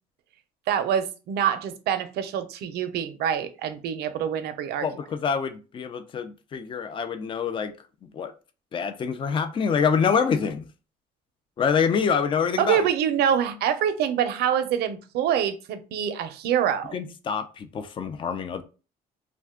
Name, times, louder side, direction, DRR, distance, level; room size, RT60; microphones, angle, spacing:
voice 1, 0.7-4.9 12.6-16.9, right 9 dB, 75° right, 0.5 m, -25 dB
voice 2, 4.8-7.7 8.0-8.3 8.7-10.6 11.6-12.9 16.9-18.6, left 6 dB, 30° left, 0.4 m, -26 dB
2.4 x 2.2 x 3.5 m
cardioid pair, 110°, 17 cm